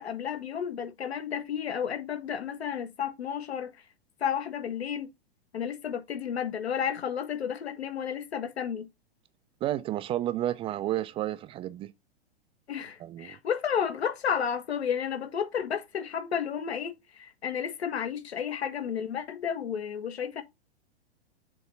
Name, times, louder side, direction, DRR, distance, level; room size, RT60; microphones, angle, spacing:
voice 1, 0.0-3.7 4.2-5.1 5.5-8.9 12.7-20.4, left 8 dB, 80° left, 1.5 m, -32 dB
voice 2, 9.6-11.9 13.0-13.4, right 13 dB, 20° right, 0.3 m, -31 dB
6.8 x 3.5 x 5.4 m
hypercardioid pair, 110°, 32 cm